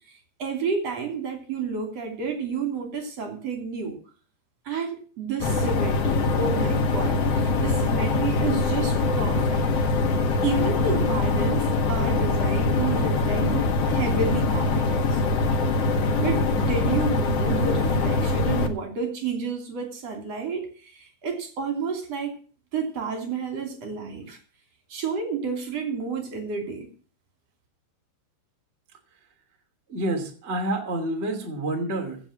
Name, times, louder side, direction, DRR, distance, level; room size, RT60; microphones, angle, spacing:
voice 1, 0.4-4.0 4.7-9.6 10.4-15.2 16.2-22.4 22.7-24.4 24.9-26.9, right 5 dB, 40° right, 4 dB, 3.6 m, -30 dB
sound 1, 5.4-18.7, left 3 dB, 80° left, 1.3 m, -23 dB
voice 2, 29.9-32.2, right 1 dB, 20° right, 3 dB, 2.3 m, -28 dB
16.0 x 6.8 x 7.3 m, 0.41 s
omnidirectional pair, 5.2 m